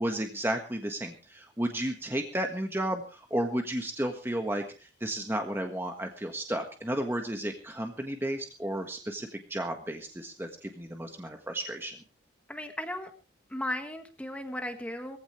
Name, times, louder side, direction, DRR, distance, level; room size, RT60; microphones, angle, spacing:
voice 1, 0.0-12.0, right 1 dB, 10° right, 4 dB, 1.5 m, -33 dB
voice 2, 12.5-13.1 13.5-15.2, left 1 dB, 5° left, 5 dB, 1.6 m, -36 dB
21.5 x 15.5 x 3.2 m, 0.33 s
head